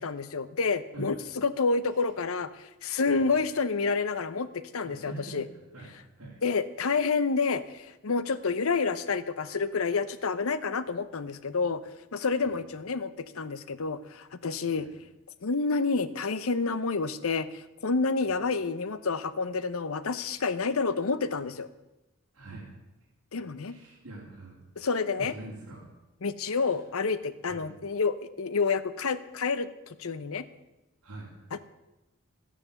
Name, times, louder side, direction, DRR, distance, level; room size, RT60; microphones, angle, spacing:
voice 1, 0.0-5.5 6.4-11.8 12.1-14.9 15.4-21.7 23.3-23.8 24.8-25.3 26.2-30.4 31.5-31.6, left 4 dB, 70° left, 14 dB, 0.8 m, -29 dB
voice 2, 4.8-5.4 5.7-6.4 12.4-12.5 14.7-14.9 18.3-18.4 22.3-22.7 23.6-24.6 25.2-25.9 26.4-26.8 27.5-27.7 31.0-31.3, right 2 dB, 65° right, -7 dB, 3.2 m, -44 dB
12.5 x 9.9 x 7.0 m, 0.96 s
head